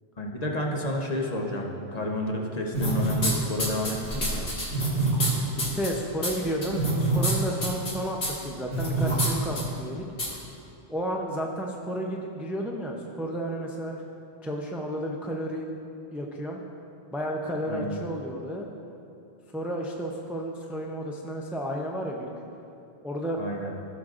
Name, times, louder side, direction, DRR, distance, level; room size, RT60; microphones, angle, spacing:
voice 1, 0.2-4.5 17.6-18.0 23.4-23.7, left 1 dB, 40° left, -1 dB, 0.9 m, -30 dB
sound 1, 2.7-3.3 3.6-5.3 5.6-5.9 6.2-6.3 6.6-7.3 7.6-7.9 8.2-8.3 8.7-9.3 9.6-9.7 10.2-10.3, right 2 dB, 80° left, 2.0 m, -25 dB
voice 2, 5.2-10.0 10.9-13.9 14.4-15.7 16.1-16.6 17.1-18.7 19.5-22.3 23.0-23.4, equal, ahead, 0 dB, 0.3 m, -32 dB
14.5 x 6.4 x 2.5 m, 2.6 s
omnidirectional pair, 1.1 m